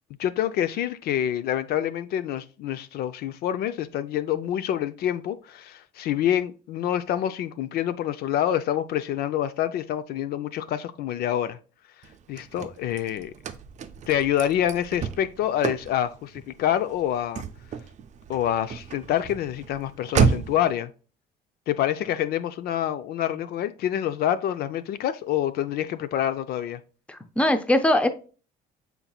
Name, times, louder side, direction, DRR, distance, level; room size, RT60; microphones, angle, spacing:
voice 1, 0.2-11.6 12.3-13.3 14.1-17.4 18.3-20.9 21.7-26.8, left 11 dB, 70° left, 0.4 m, -27 dB
Car / Slam, 12.0-20.7, right 6 dB, 45° right, 0.5 m, -31 dB
voice 2, 27.1-28.1, left 1 dB, 5° left, 0.6 m, -21 dB
5.8 x 4.0 x 2.3 m
cardioid pair, 110°, 17 cm